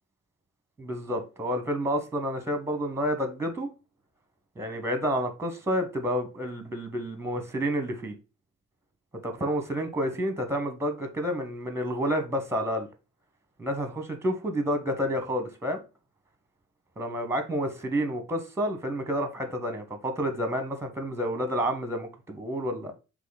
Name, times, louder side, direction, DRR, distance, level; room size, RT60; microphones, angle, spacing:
voice 1, 0.8-3.7 4.6-8.1 9.2-12.9 13.6-15.8 17.0-22.9, equal, 10° right, 1.0 m, -29 dB
3.8 x 3.0 x 4.0 m
cardioid pair, 90°, 30 cm